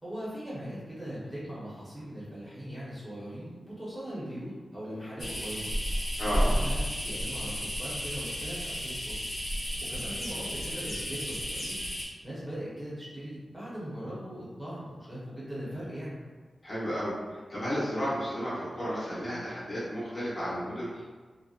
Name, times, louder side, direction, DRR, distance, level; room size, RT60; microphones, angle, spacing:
voice 1, 0.0-5.7 6.0-9.1 9.8-11.8 12.2-16.2, equal, 10° right, -9 dB, 1.0 m, -40 dB
sound 1, 5.2-12.1, equal, 60° left, 0.9 m, -32 dB
voice 2, 6.2-6.5 16.6-21.0, equal, 40° left, -10 dB, 1.1 m, -33 dB
2.7 x 2.1 x 2.4 m, 1.4 s
cardioid pair, 70°, 0 cm